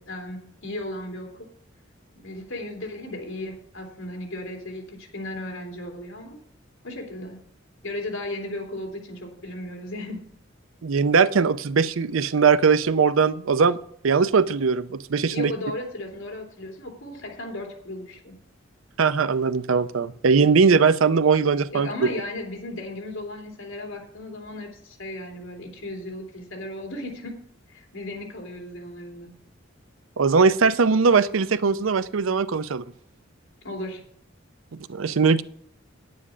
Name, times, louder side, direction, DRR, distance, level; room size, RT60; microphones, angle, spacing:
voice 1, 0.0-1.5 2.2-6.4 6.8-7.4 7.8-10.3 15.3-18.4 21.7-27.3 27.7-29.3 33.6-34.0, left 1 dB, 75° left, 3.1 m, -35 dB
voice 2, 10.8-13.8 14.0-15.5 19.0-22.1 30.2-32.8 34.9-35.4, right 5 dB, 85° right, 0.6 m, -20 dB
9.8 x 9.7 x 5.0 m
head